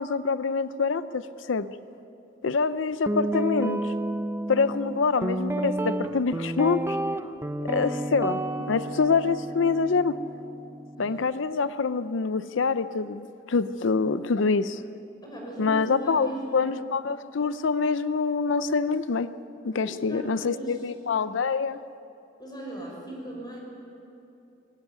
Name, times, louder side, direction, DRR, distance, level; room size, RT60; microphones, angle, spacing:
voice 1, 0.0-1.7 2.4-3.9 4.5-7.0 7.7-8.4 8.7-10.2 11.0-14.8 15.6-19.3 19.6-21.8, left 4 dB, 80° left, 13 dB, 0.5 m, -25 dB
Guitar, 3.1-11.2, right 1 dB, 15° right, 0.6 m, -31 dB
voice 2, 15.2-16.7 19.7-20.9 22.4-23.6, right 1 dB, 20° left, -2 dB, 6.3 m, -38 dB
22.0 x 16.0 x 9.5 m, 2.8 s
head